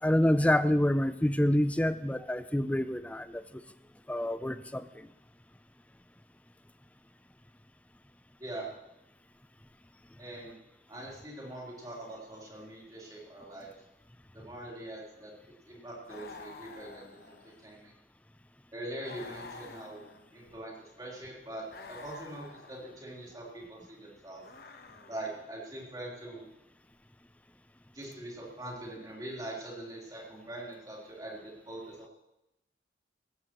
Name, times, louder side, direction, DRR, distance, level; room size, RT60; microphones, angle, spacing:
voice 1, 0.0-3.6 4.1-5.1, left 1 dB, 10° left, 13 dB, 0.4 m, -27 dB
voice 2, 10.2-10.5 10.9-13.7 14.3-15.3 15.7-17.9 18.7-20.0 20.3-24.4 25.1-26.5 27.9-32.1, right 1 dB, 20° right, -4 dB, 3.8 m, -43 dB
sound 1, 16.0-17.8 19.0-20.6 21.7-23.0 24.4-25.5, left 3 dB, 60° left, 1.1 m, -49 dB
17.0 x 14.5 x 3.1 m, 0.88 s
head